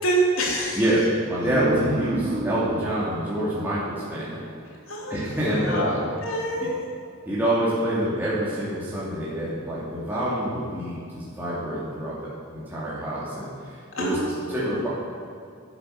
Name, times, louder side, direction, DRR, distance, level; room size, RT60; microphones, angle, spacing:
voice 1, 0.0-0.8 4.9-5.9 6.2-6.8 14.0-14.8, right 1 dB, 80° left, -2 dB, 3.2 m, -27 dB
voice 2, 0.7-4.4 5.1-6.1 7.3-14.9, right 1 dB, 10° right, -10 dB, 2.8 m, -26 dB
sound 1, 1.5-4.6, right 1 dB, 50° right, 1.1 m, -31 dB
12.0 x 10.5 x 6.7 m, 2.4 s
head